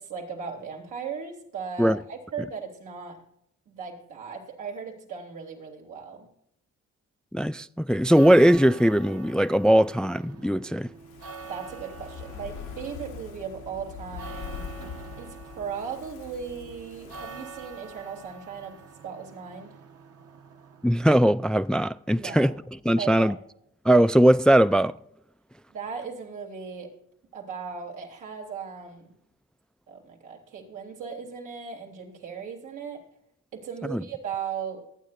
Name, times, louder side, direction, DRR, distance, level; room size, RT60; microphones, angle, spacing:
voice 1, 0.0-3.2 3.7-6.3 11.5-14.7 15.2-19.7 22.1-22.5 23.0-23.4 25.7-26.9 27.3-29.1 29.9-33.0 33.5-34.9, right 6 dB, 90° right, 3.4 m, -37 dB
voice 2, 7.3-10.9 20.8-22.6 22.8-23.4 23.8-25.0 33.9-34.0, equal, 5° left, 0.3 m, -20 dB
sound 1, 7.9-21.5, right 5 dB, 50° right, 1.1 m, -45 dB
Fire, 10.9-18.3 18.6-18.7, left 7 dB, 80° left, 1.0 m, -43 dB
24.0 x 9.1 x 2.6 m
cardioid pair, 90°, 30 cm